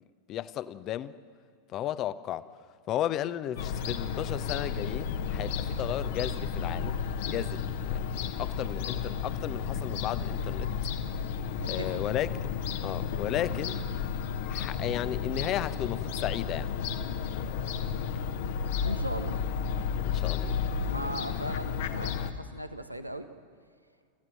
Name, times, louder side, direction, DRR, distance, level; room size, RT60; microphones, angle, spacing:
voice 1, 0.3-1.1 1.7-2.4 2.9-10.7 11.7-12.3 12.8-13.8 14.5-16.7 20.0-20.6, left 12 dB, 35° left, 15 dB, 0.8 m, -34 dB
Fowl / Gull seagull, 3.6-22.3, left 6 dB, 55° left, 1.3 m, -32 dB
voice 2, 11.6-12.0 18.8-19.3 20.8-23.3, right 1 dB, 90° right, 8 dB, 1.3 m, -38 dB
28.5 x 15.5 x 7.8 m, 2.2 s
figure-of-eight pair, 90°, 0 cm